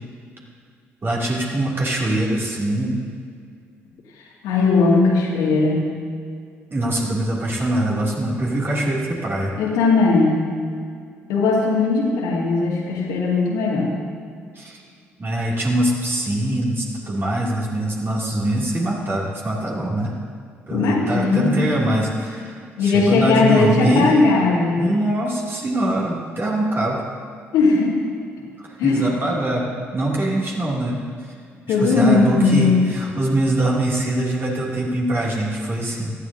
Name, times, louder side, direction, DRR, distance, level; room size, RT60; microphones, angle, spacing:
voice 1, 1.0-3.0 6.7-9.5 14.5-14.8 15.2-20.1 20.7-24.1 24.8-27.0 28.6-31.0 31.7-36.1, right 1 dB, 35° right, -5 dB, 2.9 m, -23 dB
voice 2, 4.4-5.8 9.6-10.4 11.3-13.9 20.7-21.6 22.8-24.9 27.5-28.0 28.8-29.1 31.7-32.8, left 3 dB, 65° left, -2 dB, 2.4 m, -18 dB
18.0 x 13.0 x 2.8 m, 2.2 s
figure-of-eight pair, 45°, 7 cm